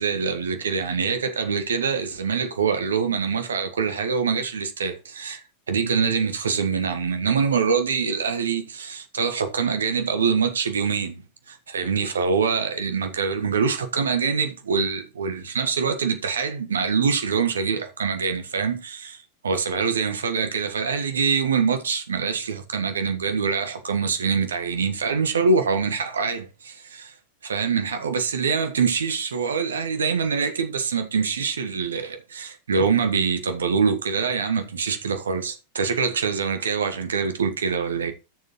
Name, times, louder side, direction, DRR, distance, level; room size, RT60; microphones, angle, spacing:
voice 1, 0.0-11.2 11.5-27.1 27.4-38.1, right 5 dB, 70° right, 1.4 m, -24 dB
14.0 x 6.7 x 3.0 m
figure-of-eight pair, 90°, 0 cm